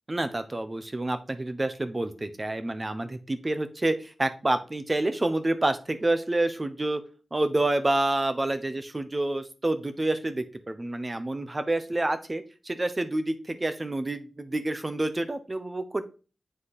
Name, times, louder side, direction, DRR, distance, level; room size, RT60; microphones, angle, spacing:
voice 1, 0.1-7.0 7.3-16.1, right 2 dB, 30° right, 10 dB, 0.9 m, -28 dB
7.7 x 3.2 x 4.2 m, 0.34 s
cardioid pair, 50°, 0 cm